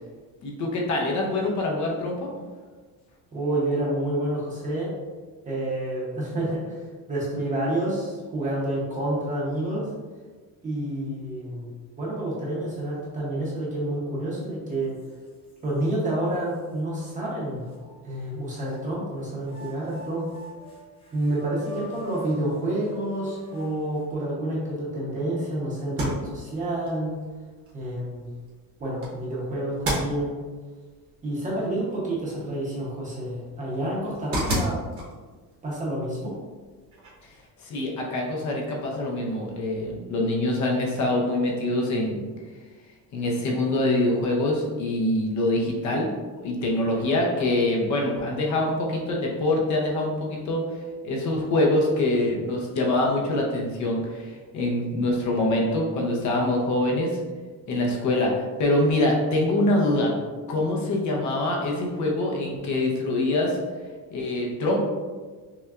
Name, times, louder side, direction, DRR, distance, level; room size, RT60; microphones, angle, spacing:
voice 1, 0.4-2.3 37.6-42.3 43.1-46.1 46.4-57.2 57.7-60.1 60.5-63.6 64.1-64.8, left 1 dB, 50° left, -1 dB, 0.7 m, -24 dB
voice 2, 3.3-4.9 5.5-6.8 7.1-9.9 10.6-11.7 12.0-14.9 15.6-17.6 18.0-20.3 21.1-27.2 27.7-28.3 28.8-30.4 31.2-34.8 35.6-36.3, right 1 dB, 20° right, -6 dB, 0.8 m, -29 dB
sound 1, 14.4-14.5 15.0-15.9 16.5-16.6 17.7-18.8 19.4-24.3, right 1 dB, 15° left, 0.5 m, -44 dB
sound 2, 25.8-37.5, right 1 dB, 40° right, 1.0 m, -36 dB
5.8 x 2.2 x 2.4 m, 1.4 s
cardioid pair, 180°, 37 cm